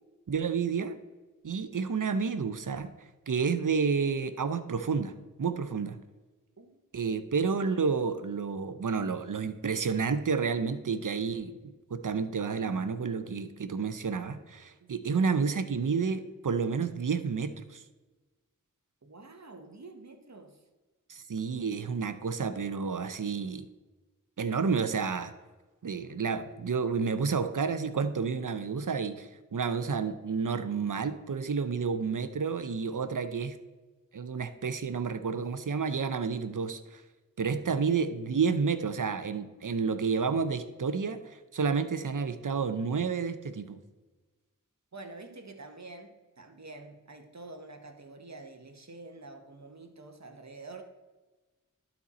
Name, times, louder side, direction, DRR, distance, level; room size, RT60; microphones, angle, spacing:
voice 1, 0.3-1.0 1.4-2.9 3.3-6.0 6.9-17.8 21.1-23.7 24.4-25.3 25.8-33.6 34.1-37.0 37.4-43.8, right 5 dB, 70° right, 10 dB, 0.6 m, -30 dB
voice 2, 14.8-15.2 19.0-20.6 44.9-50.8, right 2 dB, 55° right, 5 dB, 1.1 m, -48 dB
12.0 x 4.3 x 4.2 m, 1.2 s
wide cardioid pair, 40°, 33 cm